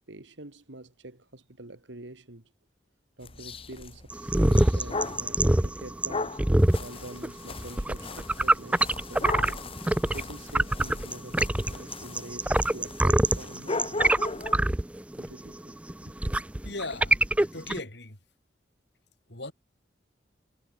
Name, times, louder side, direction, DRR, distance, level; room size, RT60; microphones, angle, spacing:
voice 1, 0.1-2.5 3.2-6.4 6.8-9.6 10.1-14.1 15.2-15.7 16.1-16.2, right 2 dB, 85° right, 2.3 m, -45 dB
sound 1, 3.2-5.3 6.1-14.7, left 3 dB, 30° left, 1.3 m, -38 dB
sound 2, 4.1-10.2 10.5-17.8, right 1 dB, 5° right, 0.4 m, -24 dB
voice 2, 16.6-18.2 19.3-19.5, left 2 dB, 70° left, 5.2 m, -38 dB
head